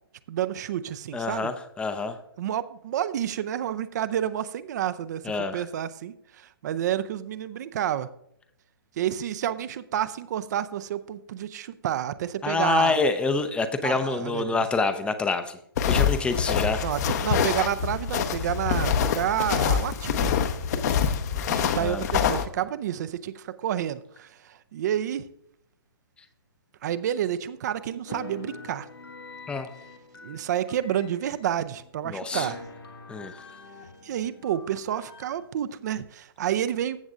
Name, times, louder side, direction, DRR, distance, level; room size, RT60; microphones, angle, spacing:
voice 1, 0.3-1.5 2.4-5.2 5.5-8.1 9.0-13.0 13.8-14.6 16.8-20.3 20.7-20.9 21.5-25.2 26.8-28.9 30.2-32.6 34.0-37.0, right 10 dB, 45° right, 13 dB, 0.5 m, -29 dB
voice 2, 1.1-2.2 5.2-5.6 12.4-15.6 15.9-16.8 21.8-22.0 29.5-29.7 32.1-32.5 33.1-33.4, left 4 dB, 10° left, 10 dB, 0.5 m, -27 dB
sound 1, 15.8-22.4, left 7 dB, 45° left, 0.8 m, -25 dB
sound 2, 28.1-31.9 32.3-35.4, left 3 dB, 75° left, 1.6 m, -44 dB
14.5 x 7.0 x 2.5 m, 0.73 s
hypercardioid pair, 130°, 13 cm